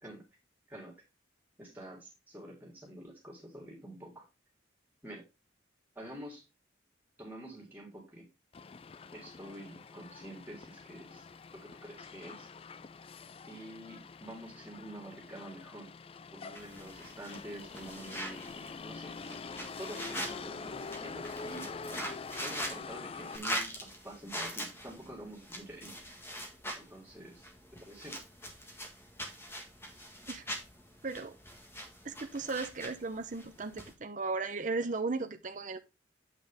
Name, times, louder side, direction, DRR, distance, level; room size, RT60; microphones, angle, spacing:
voice 1, 1.6-4.3 5.0-5.2 6.0-6.4 7.2-8.2 9.1-11.3 11.5-12.5 13.5-15.9 16.3-19.4 19.8-21.7 22.4-26.0 26.7-27.5 27.7-28.2, right 1 dB, 10° right, 3.7 m, -47 dB
Motor vehicle (road), 8.5-23.4, left 4 dB, 30° left, 0.3 m, -45 dB
sound 1, 16.5-33.9, equal, 15° left, 1.6 m, -43 dB
voice 2, 31.0-31.3 32.0-35.8, right 3 dB, 45° right, 0.8 m, -36 dB
8.3 x 6.3 x 3.5 m
head